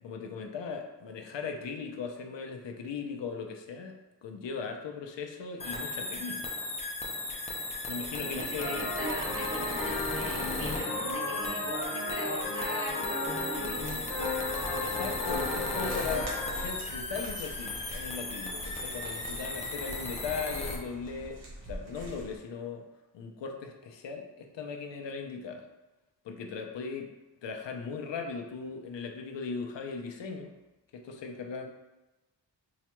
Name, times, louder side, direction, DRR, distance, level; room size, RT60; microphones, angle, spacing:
voice 1, 0.0-6.4 7.9-8.9 14.8-21.4 21.7-22.8 23.1-25.6 26.2-27.1 27.4-30.5 30.9-31.7, left 5 dB, 70° left, 4 dB, 0.6 m, -38 dB
sound 1, 5.6-20.8, left 2 dB, 15° left, 0.3 m, -36 dB
voice 2, 8.2-14.1, right 1 dB, 30° right, 0 dB, 0.6 m, -42 dB
sound 2, 8.6-16.7, left 2 dB, 40° left, 0.8 m, -35 dB
sound 3, 13.6-22.4, equal, 55° right, 1.1 m, -45 dB
4.7 x 2.2 x 2.9 m, 1.1 s
wide cardioid pair, 175°, 45 cm